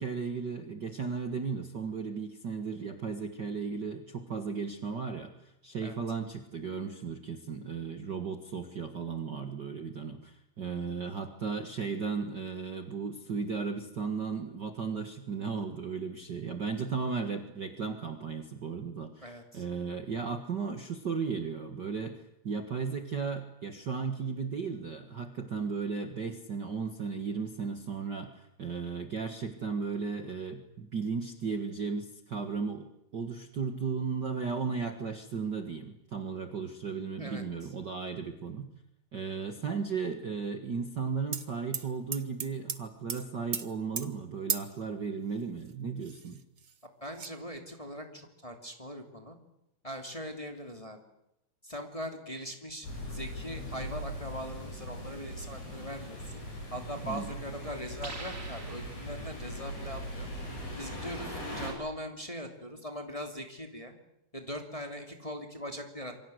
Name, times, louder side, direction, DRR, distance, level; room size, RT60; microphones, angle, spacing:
voice 1, 0.0-38.7 39.1-46.4 57.0-57.3, right 5 dB, 40° right, 6 dB, 1.9 m, -35 dB
voice 2, 19.2-19.6 37.2-37.4 47.0-49.4 49.8-51.0 51.6-56.3 56.7-60.3 60.8-63.9 64.3-66.1, equal, 10° left, 4 dB, 2.6 m, -41 dB
sound 1, 41.3-41.5 41.7-42.8 43.1-43.2 43.5-43.7 44.0-44.1 44.5-44.7 45.7-45.8 46.0-46.7 47.2-47.3, right 7 dB, 60° right, 0.8 m, -35 dB
sound 2, 52.8-61.7, equal, 85° left, 9.3 m, -40 dB
sound 3, 58.0-59.6, right 3 dB, 25° right, 3.2 m, -45 dB
27.5 x 23.5 x 8.0 m, 0.80 s
omnidirectional pair, 3.4 m